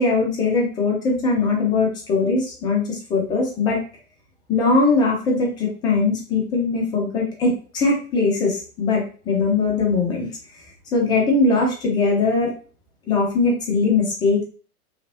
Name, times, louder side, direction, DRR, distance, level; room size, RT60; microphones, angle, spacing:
voice 1, 0.0-3.8 4.5-10.3 10.9-12.5 13.1-14.4, left 3 dB, 10° left, -1 dB, 0.4 m, -20 dB
3.1 x 2.9 x 2.8 m, 0.39 s
figure-of-eight pair, 100°, 44 cm